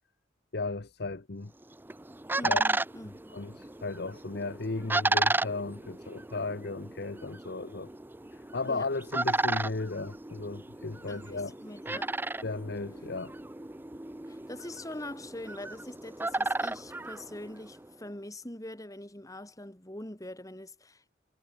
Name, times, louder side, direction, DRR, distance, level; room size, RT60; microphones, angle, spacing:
voice 1, 0.5-1.5 2.4-2.7 3.3-7.9 8.3-11.5 11.9-12.0 12.4-13.3, left 3 dB, 60° left, 1.0 m, -35 dB
sound 1, 1.6-17.9, right 2 dB, 10° right, 0.6 m, -34 dB
voice 2, 2.4-3.3 8.7-8.9 11.1-12.1 14.3-21.2, left 1 dB, 20° left, 2.5 m, -43 dB
head